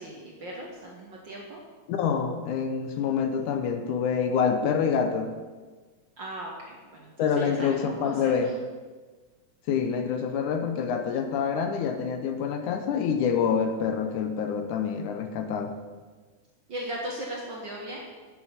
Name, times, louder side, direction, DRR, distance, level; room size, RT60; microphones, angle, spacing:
voice 1, 0.0-1.6 6.2-8.5 16.7-18.1, right 1 dB, 50° right, -2 dB, 1.4 m, -38 dB
voice 2, 1.9-5.3 7.2-8.5 9.7-15.8, left 6 dB, 80° left, 6 dB, 2.3 m, -26 dB
10.0 x 7.6 x 5.7 m, 1.4 s
omnidirectional pair, 3.6 m